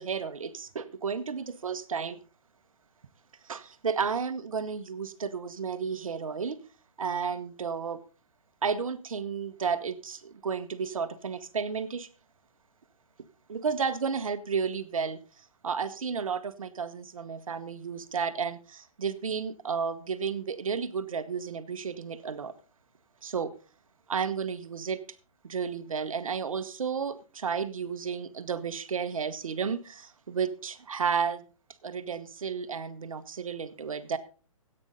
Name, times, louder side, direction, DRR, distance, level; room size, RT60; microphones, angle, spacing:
voice 1, 0.0-2.2 3.4-6.6 7.0-8.0 8.6-12.1 13.5-15.2 15.6-22.5 23.2-23.5 24.1-25.0 25.4-31.4 31.8-34.2, right 6 dB, 75° right, 12 dB, 1.2 m, -32 dB
14.0 x 9.0 x 3.9 m, 0.37 s
hypercardioid pair, 135°, 18 cm